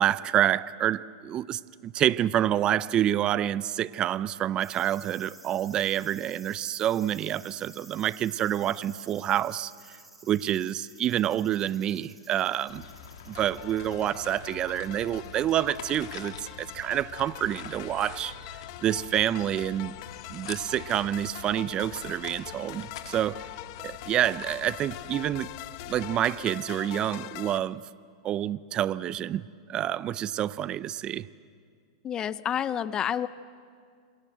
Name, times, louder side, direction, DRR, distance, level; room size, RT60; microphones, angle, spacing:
voice 1, 0.0-12.8 13.3-18.3 18.8-20.0 20.3-23.5 23.8-25.5 25.9-27.8 28.2-31.3, right 11 dB, 30° right, 0.6 m, -28 dB
sound 1, 4.6-18.7 19.0-19.1, right 1 dB, 5° right, 5.0 m, -53 dB
sound 2, 12.7-26.2, left 7 dB, 70° left, 3.0 m, -45 dB
sound 3, 13.3-27.6, left 18 dB, 50° left, 0.9 m, -43 dB
voice 2, 32.0-33.3, left 9 dB, 25° left, 0.6 m, -29 dB
28.5 x 23.5 x 8.0 m
hypercardioid pair, 135°, 3 cm